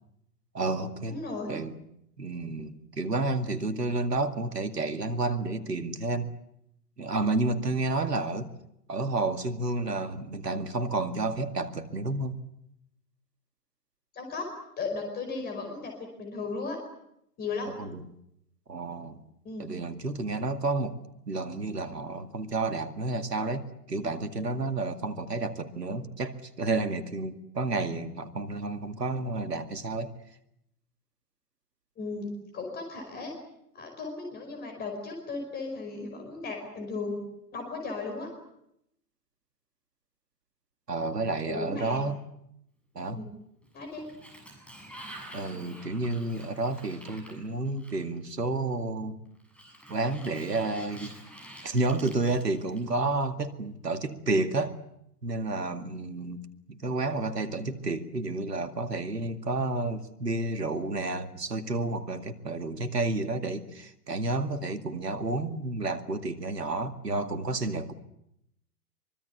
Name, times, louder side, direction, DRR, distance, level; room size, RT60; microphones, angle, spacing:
voice 1, 0.5-1.2 1.5-1.7 2.2-6.3 7.0-8.5 8.9-12.4 17.8-18.0 18.7-19.2 19.6-21.0 21.3-30.1 40.9-42.2 43.0-43.2 45.3-49.2 49.9-51.1 51.6-54.8 55.2-67.9, right 2 dB, 80° right, 9 dB, 2.3 m, -30 dB
voice 2, 1.1-1.5 14.1-14.5 14.8-16.8 17.4-17.7 19.4-19.7 32.0-32.3 32.5-33.3 33.7-37.2 37.5-38.3 41.4-42.0 43.1-43.3 43.7-44.1, left 4 dB, 20° left, 4 dB, 5.1 m, -35 dB
Sliding door, 43.6-48.3 49.4-53.1, right 1 dB, ahead, 7.5 m, -48 dB
24.0 x 23.5 x 8.2 m, 0.79 s
figure-of-eight pair, 115°, 47 cm